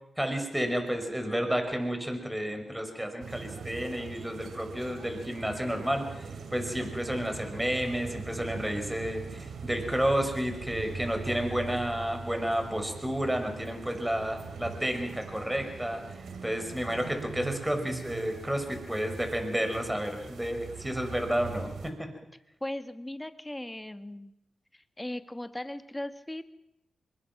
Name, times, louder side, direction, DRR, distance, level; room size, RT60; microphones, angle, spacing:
voice 1, 0.2-16.0 16.4-22.1, equal, 10° right, 6 dB, 5.6 m, -31 dB
sound 1, 3.2-21.9, right 5 dB, 80° right, 2.5 m, -42 dB
voice 2, 22.6-24.3 25.0-26.4, left 1 dB, 15° left, 10 dB, 1.6 m, -37 dB
24.0 x 21.0 x 6.1 m, 0.83 s
cardioid pair, 50°, 0 cm